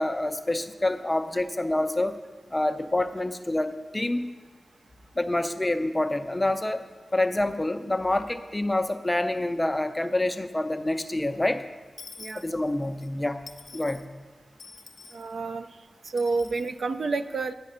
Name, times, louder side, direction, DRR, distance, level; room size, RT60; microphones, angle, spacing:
voice 1, 0.0-2.1 2.5-4.3 5.2-6.8 7.1-11.6 12.4-13.4 13.7-14.0, left 1 dB, 15° left, 9 dB, 0.4 m, -27 dB
Dishes pots and pans / Coin (dropping), 12.0-13.1 13.5-14.1 14.6-15.3 16.2-16.7, left 4 dB, 65° left, 0.6 m, -46 dB
voice 2, 15.1-15.7 16.0-17.5, right 3 dB, 60° right, 9 dB, 0.3 m, -29 dB
9.3 x 5.8 x 5.4 m, 1.3 s
wide cardioid pair, 155°, 0 cm